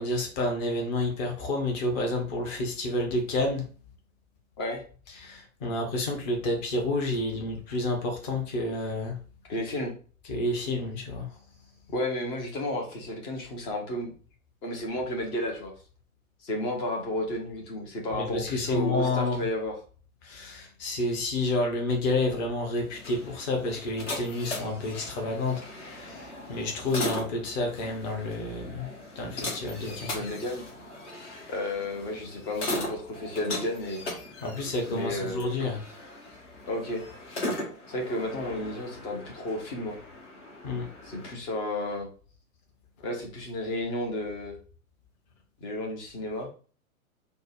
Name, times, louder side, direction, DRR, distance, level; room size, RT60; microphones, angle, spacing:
voice 1, 0.0-3.7 5.2-9.2 10.3-11.3 18.1-19.4 20.2-30.3 34.4-35.8 40.6-40.9, left 2 dB, 30° left, 2 dB, 1.0 m, -30 dB
voice 2, 9.5-9.9 11.9-14.1 14.6-15.7 16.4-19.8 29.9-30.6 31.5-34.0 34.9-35.4 36.7-37.0 37.9-40.0 41.0-42.1 43.0-44.6 45.6-46.5, left 1 dB, 10° left, 1 dB, 0.4 m, -32 dB
sound 1, 22.8-41.3, left 1 dB, 55° left, 1.6 m, -38 dB
4.4 x 2.1 x 4.6 m, 0.39 s
figure-of-eight pair, 110°, 43 cm